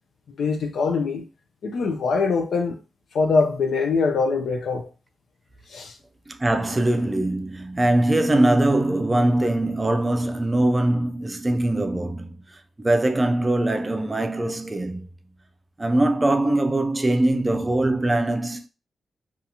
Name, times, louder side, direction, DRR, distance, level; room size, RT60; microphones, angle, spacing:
voice 1, 0.4-1.2 1.6-2.8 3.1-4.9 5.7-6.0, left 4 dB, 80° left, 0.4 m, -23 dB
voice 2, 6.3-12.4 12.8-15.1 15.8-18.7, right 1 dB, 20° right, 0.4 m, -22 dB
2.6 x 2.4 x 2.8 m
cardioid pair, 90°, 0 cm